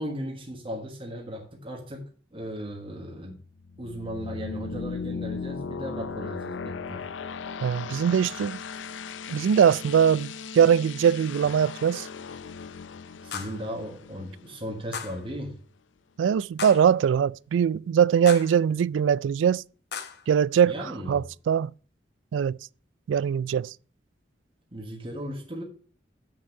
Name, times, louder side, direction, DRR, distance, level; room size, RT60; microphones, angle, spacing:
voice 1, 0.0-3.4 3.8-7.0 13.2-15.6 20.6-21.3 24.7-25.6, equal, 30° right, 1.4 m, -36 dB
sound 1, 2.7-15.4, left 5 dB, 85° left, 0.5 m, -38 dB
voice 2, 7.6-8.6 9.3-12.1 16.2-19.6 20.3-20.7 21.1-21.7 22.3-22.6 23.1-23.7, right 8 dB, 85° right, 0.3 m, -22 dB
sound 2, 11.9-12.0 13.3-13.7 14.9-15.3 16.6-17.0 18.3-18.6 19.9-20.3, left 7 dB, 60° left, 1.1 m, -37 dB
7.1 x 6.0 x 6.5 m
head